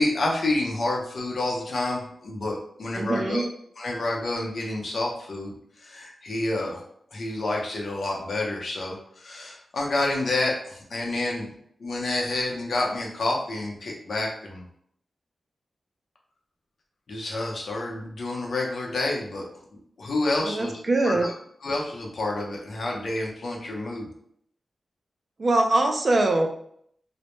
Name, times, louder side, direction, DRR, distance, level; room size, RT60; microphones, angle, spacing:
voice 1, 0.0-3.4 3.8-6.8 7.1-11.5 11.8-14.6 17.1-19.4 19.7-20.8 21.0-21.3 21.6-24.1, left 2 dB, 65° left, -1 dB, 0.6 m, -29 dB
voice 2, 2.9-3.5 20.4-21.3 25.4-26.5, right 2 dB, 45° right, 4 dB, 0.3 m, -23 dB
2.0 x 2.0 x 2.9 m, 0.68 s
wide cardioid pair, 90°, 0 cm